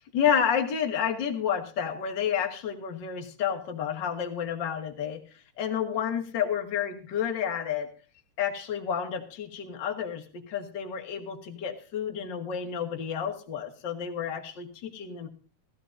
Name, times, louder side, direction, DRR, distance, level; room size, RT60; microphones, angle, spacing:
voice 1, 0.1-5.2 5.6-7.9 8.4-15.3, left 8 dB, 45° left, 4 dB, 1.5 m, -30 dB
16.5 x 14.5 x 2.7 m, 0.38 s
omnidirectional pair, 4.6 m